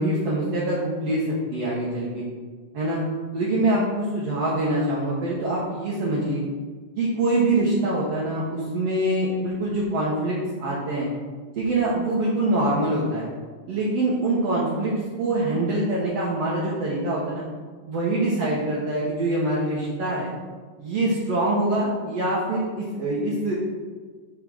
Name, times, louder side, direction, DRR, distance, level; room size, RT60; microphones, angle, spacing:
voice 1, 0.0-2.2 2.7-3.0 3.3-6.4 7.0-11.1 11.6-13.3 13.7-17.4 17.9-20.3 20.8-23.5, right 1 dB, 60° right, -7 dB, 2.0 m, -24 dB
5.6 x 4.8 x 6.4 m, 1.5 s
omnidirectional pair, 3.7 m